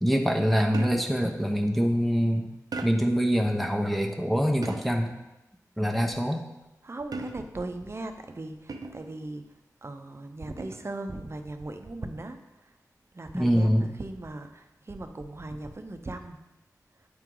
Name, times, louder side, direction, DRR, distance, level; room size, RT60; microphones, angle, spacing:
voice 1, 0.0-2.5 2.8-5.1 5.8-6.4 13.3-13.9, equal, ahead, 2 dB, 0.8 m, -24 dB
sound 1, 0.7-1.3 2.7-3.2 4.6-5.1 7.1-7.7 8.7-9.2 10.6-11.0, right 3 dB, 80° right, 0.6 m, -38 dB
voice 2, 5.9-6.3 6.8-9.4 9.8-12.7 13.1-16.4, right 2 dB, 45° right, 7 dB, 0.7 m, -39 dB
7.9 x 4.5 x 3.8 m, 0.98 s
cardioid pair, 45°, 6 cm